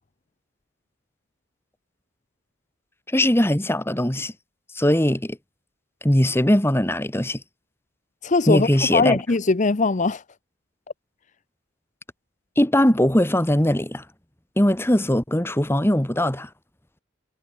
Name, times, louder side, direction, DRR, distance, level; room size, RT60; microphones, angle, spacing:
voice 1, 3.1-4.3 4.7-5.4 6.0-7.4 8.5-9.2 12.6-14.0 14.6-16.5, left 1 dB, 10° left, 1.7 m, -20 dB
voice 2, 8.2-10.2, left 3 dB, 35° left, 0.6 m, -21 dB
head